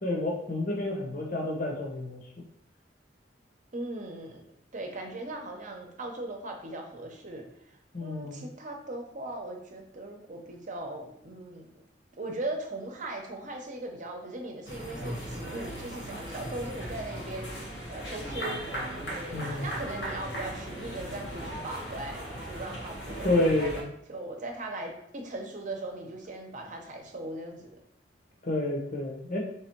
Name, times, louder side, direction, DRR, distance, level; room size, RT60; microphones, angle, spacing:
voice 1, 0.0-2.2 7.9-8.4 19.3-19.7 23.2-23.9 28.4-29.4, left 1 dB, 50° left, -1 dB, 0.9 m, -29 dB
voice 2, 3.7-4.4 4.7-7.5 8.0-11.8 12.2-18.8 19.1-23.5 24.1-27.7, right 2 dB, 45° right, 2 dB, 0.8 m, -39 dB
sound 1, 14.6-23.8, right 1 dB, 80° left, 1.5 m, -38 dB
3.5 x 3.3 x 4.5 m, 0.74 s
head